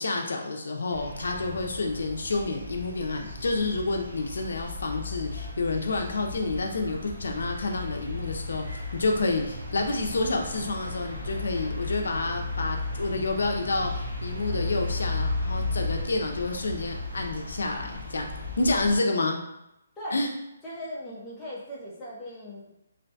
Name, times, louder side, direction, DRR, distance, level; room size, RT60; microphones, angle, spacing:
voice 1, 0.0-18.3 18.6-19.4 20.1-20.3, left 3 dB, 75° left, 2 dB, 0.4 m, -29 dB
sound 1, 0.9-19.0, left 2 dB, 65° right, 0.7 m, -35 dB
voice 2, 20.6-22.7, equal, 10° left, -8 dB, 0.4 m, -38 dB
2.5 x 2.1 x 2.6 m, 0.86 s
hypercardioid pair, 175°, 0 cm